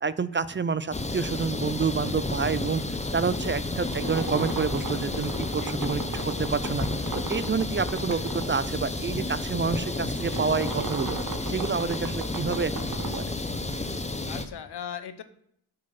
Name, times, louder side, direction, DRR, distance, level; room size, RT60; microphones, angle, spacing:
voice 1, 0.0-2.8 3.1-6.9 7.3-11.2 11.5-12.7 13.2-13.3, right 5 dB, 30° right, 16 dB, 0.5 m, -28 dB
sound 1, 0.9-14.4, left 2 dB, 15° left, 1.0 m, -31 dB
sound 2, 3.4-14.1, right 4 dB, 55° right, 1.5 m, -38 dB
voice 2, 5.5-5.9 14.3-15.2, left 8 dB, 80° left, 12 dB, 0.9 m, -39 dB
10.5 x 6.6 x 5.6 m, 0.71 s
cardioid pair, 75°, 39 cm